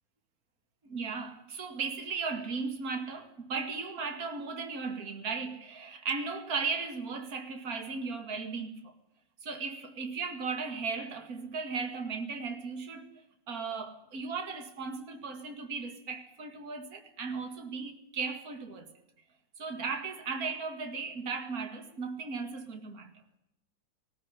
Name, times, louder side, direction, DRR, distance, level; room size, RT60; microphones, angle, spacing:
voice 1, 0.8-8.9 9.4-13.2 13.5-18.9 19.6-23.1, right 4 dB, 50° right, 2.6 m, -36 dB
19.5 x 16.5 x 9.7 m
omnidirectional pair, 2.0 m